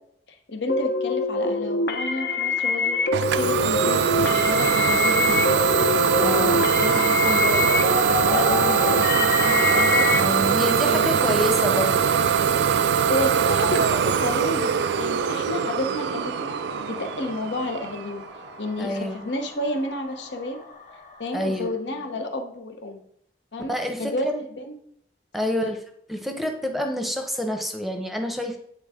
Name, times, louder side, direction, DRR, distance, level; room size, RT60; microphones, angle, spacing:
voice 1, 0.5-3.0 3.3-5.7 6.1-7.8 8.1-10.1 10.5-11.4 12.9-16.6 16.9-18.2 18.6-20.6 21.2-23.1 23.5-23.7 24.0-24.7 25.6-25.7, left 2 dB, 90° left, 5 dB, 0.9 m, -30 dB
sound 1, 0.7-10.2, left 3 dB, 65° left, 0.7 m, -25 dB
Idling / Domestic sounds home sounds, 3.1-18.7, right 7 dB, 80° right, 0.3 m, -22 dB
sound 2, 4.5-21.8, left 3 dB, 45° left, 1.1 m, -36 dB
voice 2, 6.2-6.7 10.1-12.1 18.8-19.3 21.3-21.7 23.7-24.3 25.3-25.8 26.1-28.6, left 1 dB, ahead, 4 dB, 0.7 m, -27 dB
8.8 x 3.9 x 3.6 m, 0.71 s
head